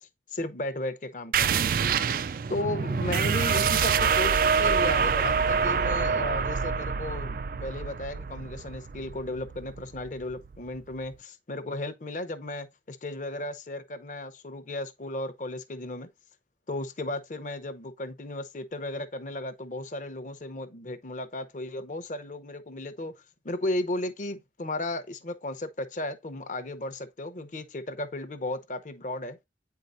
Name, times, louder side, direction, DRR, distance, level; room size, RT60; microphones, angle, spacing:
voice 1, 0.3-1.8 2.5-16.1 16.7-23.1 23.4-29.4, left 1 dB, 45° left, 0.8 m, -35 dB
sound 1, 1.3-10.6, right 6 dB, 50° right, 0.3 m, -26 dB
8.7 x 4.6 x 2.6 m
head